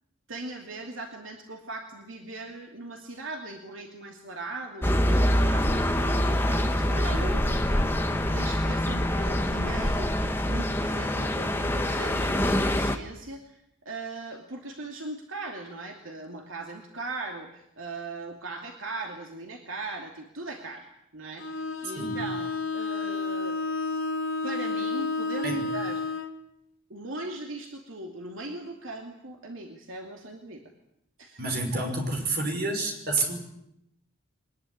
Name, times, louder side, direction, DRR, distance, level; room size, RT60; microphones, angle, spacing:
voice 1, 0.3-23.6 24.4-26.0 26.9-30.6 31.2-31.4, right 2 dB, 70° right, 2 dB, 2.7 m, -39 dB
sound 1, 4.8-13.0, left 1 dB, 10° left, 1.4 m, -25 dB
Bowed string instrument, 21.4-26.4, left 3 dB, 75° left, 2.5 m, -31 dB
voice 2, 31.4-33.4, right 2 dB, 45° right, 3 dB, 5.7 m, -29 dB
23.0 x 20.0 x 10.0 m, 0.78 s
head